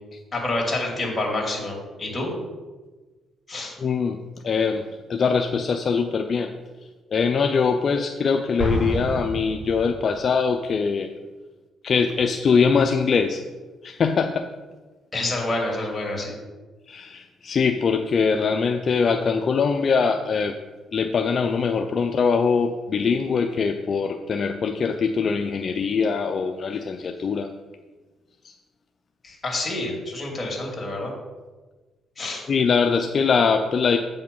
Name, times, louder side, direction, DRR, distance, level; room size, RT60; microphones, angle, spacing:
voice 1, 0.3-2.3 3.5-3.7 15.1-16.3 29.2-31.1 32.2-32.4, left 2 dB, 25° left, -1 dB, 2.8 m, -28 dB
voice 2, 3.8-4.2 4.4-4.8 5.1-6.5 7.1-11.1 11.8-13.4 13.8-14.5 16.9-20.6 20.9-27.5 32.5-34.0, left 5 dB, 50° left, 5 dB, 0.5 m, -22 dB
Explosion, 8.6-10.3, equal, 10° right, 2.3 m, -28 dB
7.8 x 5.5 x 5.4 m, 1.3 s
cardioid pair, 90°, 0 cm